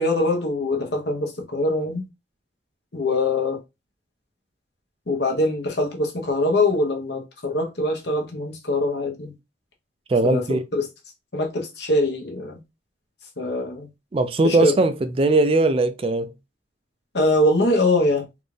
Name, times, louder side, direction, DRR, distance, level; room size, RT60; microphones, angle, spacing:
voice 1, 0.0-2.0 2.9-3.6 5.1-9.3 10.2-10.4 10.7-10.9 11.3-12.6 13.4-13.9 14.4-14.7 17.1-18.3, left 2 dB, 65° left, 1.1 m, -23 dB
voice 2, 10.1-10.6 14.1-16.3, right 2 dB, 30° right, 0.3 m, -20 dB
3.9 x 2.5 x 3.3 m
head